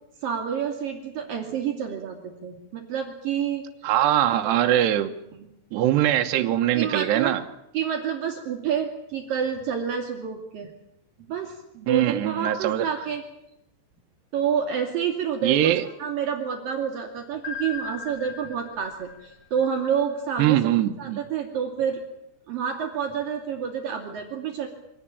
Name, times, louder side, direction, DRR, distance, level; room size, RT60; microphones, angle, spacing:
voice 1, 0.2-3.6 5.4-5.5 6.7-7.3 7.7-10.7 11.3-13.2 14.3-20.7 21.0-22.0 22.5-24.7, right 7 dB, 55° right, 2 dB, 4.1 m, -28 dB
voice 2, 3.8-5.1 5.7-7.4 11.9-12.8 15.4-15.9 20.4-21.2, right 12 dB, 85° right, 4 dB, 3.2 m, -22 dB
sound 1, 17.4-20.4, left 5 dB, 80° left, 1.2 m, -38 dB
25.0 x 18.5 x 8.8 m, 0.84 s
omnidirectional pair, 4.9 m